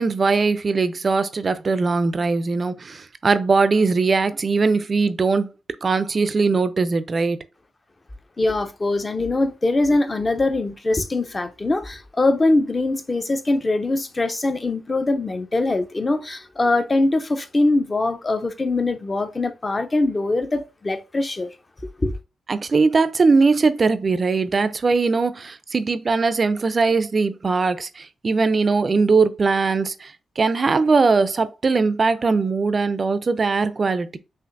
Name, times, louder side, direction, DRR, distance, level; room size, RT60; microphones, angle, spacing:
voice 1, 0.0-5.5 5.8-7.4 22.5-34.2, right 4 dB, 35° right, 0.4 m, -20 dB
voice 2, 8.4-21.5 21.8-22.1, left 2 dB, 25° left, 0.5 m, -22 dB
5.8 x 2.5 x 2.5 m
cardioid pair, 110°, 0 cm